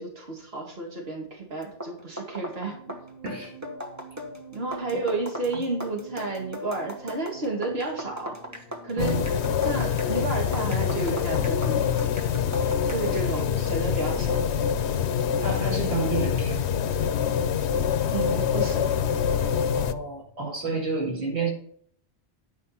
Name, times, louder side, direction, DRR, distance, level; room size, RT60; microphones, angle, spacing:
voice 1, 0.0-3.0 4.5-8.4 8.8-9.2 9.6-12.0 12.9-14.4 18.1-18.9, right 3 dB, 70° right, -1 dB, 2.4 m, -31 dB
sound 1, 1.6-13.2, left 1 dB, 15° right, 1.3 m, -38 dB
sound 2, 2.1-20.6, right 3 dB, 20° left, 2.2 m, -48 dB
sound 3, 9.0-19.9, left 8 dB, 85° left, 1.0 m, -25 dB
voice 2, 15.4-16.8 19.7-21.5, right 3 dB, 85° right, -1 dB, 2.5 m, -30 dB
10.0 x 5.2 x 5.7 m, 0.64 s
omnidirectional pair, 1.1 m